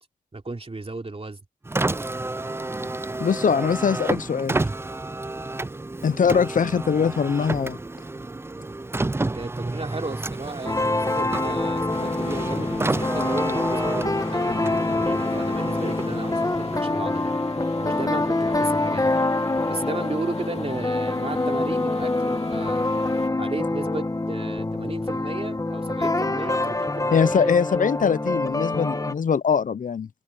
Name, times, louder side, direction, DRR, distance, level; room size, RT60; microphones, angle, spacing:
voice 1, 0.3-1.4 9.3-17.3 17.8-19.1 19.6-22.9 23.4-27.5, right 3 dB, 40° right, 3.1 m, -34 dB
Car, 1.6-17.0, right 2 dB, 15° right, 0.4 m, -30 dB
voice 2, 3.2-4.6 6.0-7.8 27.1-30.1, left 6 dB, 65° left, 0.5 m, -22 dB
sound 1, 10.6-29.1, left 2 dB, 25° left, 1.1 m, -25 dB
sound 2, 11.9-23.3, left 3 dB, 45° left, 3.0 m, -40 dB
cardioid pair, 55°, 15 cm